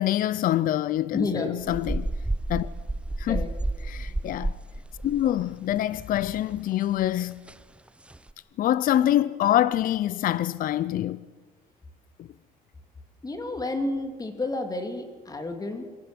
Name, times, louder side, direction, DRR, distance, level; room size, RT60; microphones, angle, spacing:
voice 1, 0.0-2.1 2.5-2.7 3.2-3.5 3.9-4.5 5.0-7.4 8.6-11.2 12.2-12.3, left 12 dB, 55° left, 0.6 m, -25 dB
voice 2, 1.1-1.6 3.3-3.5 13.2-15.9, left 2 dB, 20° left, 3.0 m, -31 dB
sound 1, 1.6-6.2 6.5-6.6 7.0-7.1 7.5-7.6 8.1-8.3, right 1 dB, 5° right, 0.7 m, -31 dB
26.0 x 15.5 x 7.8 m
cardioid pair, 110°, 17 cm